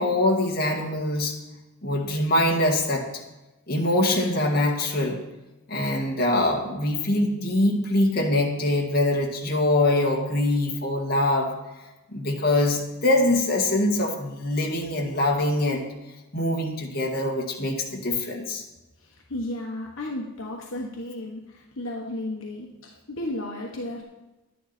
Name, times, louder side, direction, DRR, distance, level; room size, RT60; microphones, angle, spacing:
voice 1, 0.0-1.4 1.8-3.1 3.7-5.2 5.7-11.6 12.1-15.9 16.3-18.6, left 1 dB, 45° left, 0 dB, 1.9 m, -23 dB
voice 2, 19.0-24.0, left 1 dB, 70° left, -1 dB, 1.3 m, -34 dB
11.0 x 10.0 x 4.3 m, 1.0 s
head